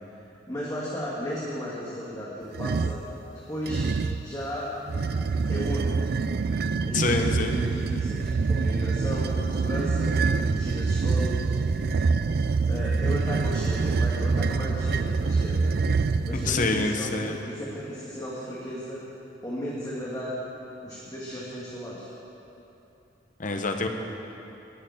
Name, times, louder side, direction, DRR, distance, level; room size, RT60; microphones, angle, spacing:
voice 1, 0.1-3.0 3.5-3.9 4.2-4.7 5.5-6.0 6.9-11.6 12.7-19.0 19.4-20.4 20.8-22.1, equal, 20° left, -7 dB, 1.8 m, -35 dB
sound 1, 2.5-3.1 3.7-4.3 4.9-16.9, right 4 dB, 55° right, 0.4 m, -26 dB
voice 2, 6.9-7.6 16.3-17.4 23.4-23.9, left 3 dB, 45° left, 4 dB, 1.0 m, -26 dB
13.5 x 6.6 x 9.9 m, 2.9 s
head